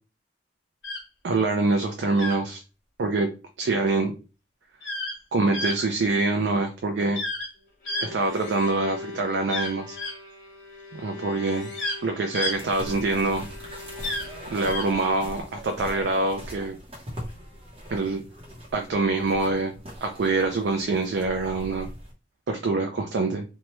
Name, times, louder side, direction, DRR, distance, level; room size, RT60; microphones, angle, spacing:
sound 1, 0.8-1.0 2.1-2.4 4.8-5.1 5.5-5.7 7.1-7.5 7.8-8.7 9.5-10.1 11.5-12.0 12.3-12.5 14.0-14.3 14.6-14.9, left 2 dB, 80° left, 1.1 m, -31 dB
voice 1, 1.2-2.6 3.0-3.3 3.6-4.1 5.3-7.2 8.0-10.0 10.9-11.7 12.0-13.5 14.5-16.8 17.9-18.2 18.7-19.7 20.0-21.9 22.5-23.4, right 3 dB, 70° right, 4 dB, 0.4 m, -25 dB
Bowed string instrument, 7.5-15.6, left 3 dB, 45° left, 1.0 m, -42 dB
sound 2, 12.5-22.1, equal, 30° right, 0.8 m, -41 dB
2.9 x 2.2 x 3.0 m, 0.32 s
head